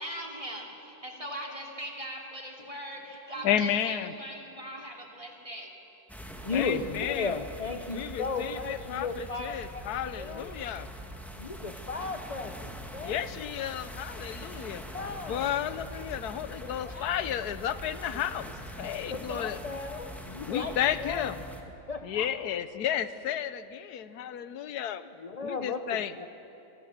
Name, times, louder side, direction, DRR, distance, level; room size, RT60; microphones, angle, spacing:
voice 1, 0.0-5.7, right 1 dB, 20° right, 1 dB, 3.0 m, -40 dB
voice 2, 3.4-4.1 6.5-7.4 7.9-10.9 13.0-14.8 15.3-18.5 18.8-19.6 20.5-21.4 22.0-25.1 25.4-26.3, left 10 dB, 85° left, 13 dB, 1.3 m, -32 dB
sound 1, 6.1-21.6, equal, ahead, 1.5 m, -43 dB
voice 3, 6.4-9.8 10.1-10.5 11.4-13.5 14.9-15.5 16.6-17.2 18.1-18.2 19.0-21.2 21.9-22.3 25.2-25.8 26.2-26.3, left 4 dB, 35° left, 6 dB, 0.6 m, -35 dB
25.0 x 19.0 x 7.2 m, 2.9 s
omnidirectional pair, 1.6 m